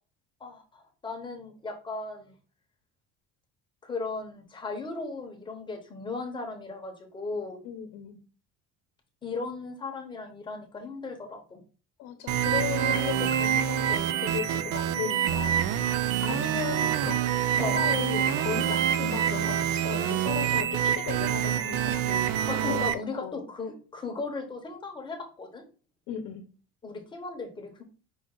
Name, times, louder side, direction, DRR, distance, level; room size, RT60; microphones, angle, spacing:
voice 1, 0.4-2.3 3.8-7.6 9.2-11.6 17.6-17.8 19.0-19.2 22.5-25.6 26.8-27.8, left 3 dB, 15° left, 2 dB, 0.8 m, -36 dB
voice 2, 7.6-8.2 12.0-15.7 16.2-17.2 17.6-23.4 26.1-26.5, left 10 dB, 70° left, 4 dB, 0.8 m, -36 dB
sound 1, 12.3-22.9, right 9 dB, 55° right, 0.4 m, -26 dB
5.5 x 2.5 x 3.7 m, 0.37 s
cardioid pair, 160°, 30 cm